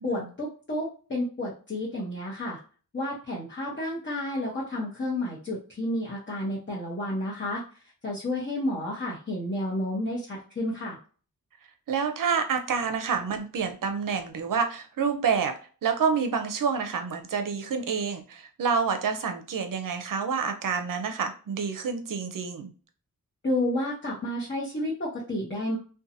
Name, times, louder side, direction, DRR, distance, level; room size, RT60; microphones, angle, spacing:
voice 1, 0.0-2.6 2.9-7.6 8.0-11.0 23.4-25.8, left 1 dB, 35° left, -5 dB, 0.9 m, -31 dB
voice 2, 11.9-15.5 15.8-22.7, right 6 dB, 65° right, 6 dB, 0.6 m, -28 dB
2.7 x 2.2 x 2.6 m, 0.39 s
wide cardioid pair, 80°, 35 cm